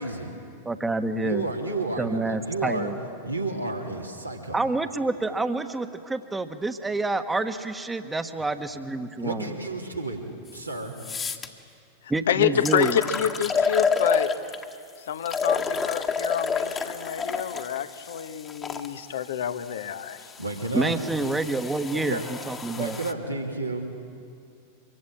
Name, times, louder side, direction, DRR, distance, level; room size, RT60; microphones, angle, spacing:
voice 1, 0.0-0.3 1.1-2.9 3.2-4.6 9.2-10.2 10.5-11.0 20.4-20.9 21.9-22.2 22.7-23.9, right 2 dB, 90° right, 3.2 m, -31 dB
voice 2, 0.6-1.5 2.0-3.0 4.5-9.5 12.1-13.0 20.7-23.0, right 2 dB, 10° right, 1.4 m, -28 dB
sound 1, 10.5-10.6 11.0-11.5 12.2-12.3 12.6-14.7 15.2-18.9 19.7-23.1, left 5 dB, 20° left, 1.7 m, -29 dB
voice 3, 12.3-14.3 15.1-20.2, left 9 dB, 60° left, 1.2 m, -28 dB
25.5 x 23.5 x 8.8 m
figure-of-eight pair, 90°, 0 cm